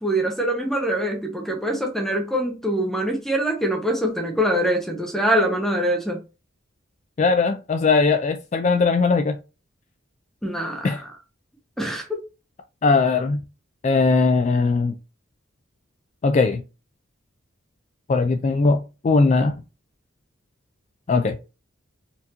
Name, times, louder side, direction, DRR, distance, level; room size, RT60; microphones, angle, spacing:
voice 1, 0.0-6.2 10.4-10.9 11.8-12.2, right 1 dB, ahead, 0.7 m, -24 dB
voice 2, 7.2-9.4 10.8-11.0 12.8-13.4 13.8-14.9 16.2-16.6 18.1-18.8 19.0-19.5 21.1-21.4, left 4 dB, 35° left, 0.3 m, -19 dB
4.3 x 2.6 x 2.8 m
head